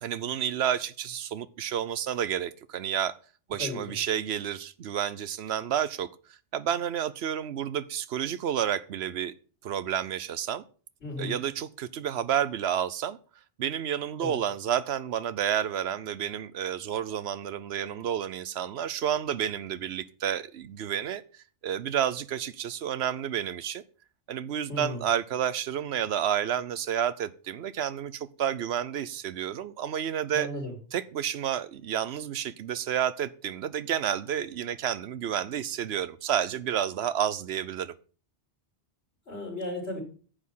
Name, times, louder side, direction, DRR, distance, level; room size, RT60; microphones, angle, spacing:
voice 1, 0.0-3.1 3.5-6.1 6.5-9.3 9.6-10.6 11.2-13.2 13.6-23.8 24.3-30.5 30.9-37.9, right 9 dB, 70° right, 16 dB, 0.9 m, -30 dB
voice 2, 3.6-4.0 11.0-11.4 14.2-14.4 24.7-25.0 30.3-30.8 39.3-40.0, left 2 dB, 65° left, -5 dB, 3.9 m, -35 dB
10.0 x 8.5 x 5.6 m, 0.40 s
omnidirectional pair, 1.2 m